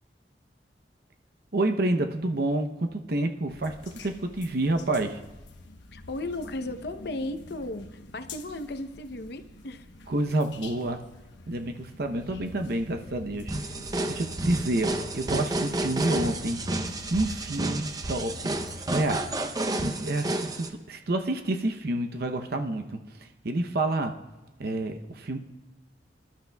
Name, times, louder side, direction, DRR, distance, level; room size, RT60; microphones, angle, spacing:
voice 1, 1.5-5.2 10.1-11.0 11.5-13.5 14.0-16.6 17.1-18.5 18.9-19.3 19.8-24.2 24.6-25.4, right 2 dB, 60° right, 6 dB, 0.7 m, -29 dB
sound 1, 3.5-19.4, left 2 dB, 90° left, 1.0 m, -46 dB
voice 2, 5.9-9.9, left 2 dB, 65° left, 9 dB, 0.7 m, -35 dB
sound 2, 13.5-20.7, right 2 dB, 20° right, 0.6 m, -31 dB
25.0 x 12.0 x 2.3 m, 1.1 s
head